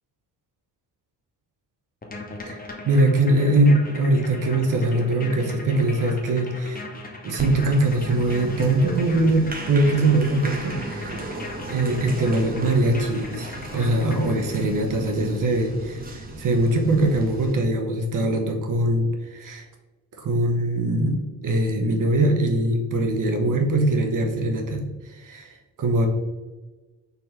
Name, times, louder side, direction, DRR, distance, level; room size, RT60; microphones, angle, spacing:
sound 1, 2.0-14.8, left 2 dB, 20° left, 1.0 m, -39 dB
voice 1, 2.8-6.9 7.2-11.2 11.7-19.7 20.2-26.1, right 2 dB, 40° right, 4 dB, 0.9 m, -22 dB
Applause, 7.4-17.5, right 1 dB, 20° right, 0.9 m, -36 dB
4.3 x 3.3 x 3.1 m, 1.2 s
figure-of-eight pair, 40°, 50 cm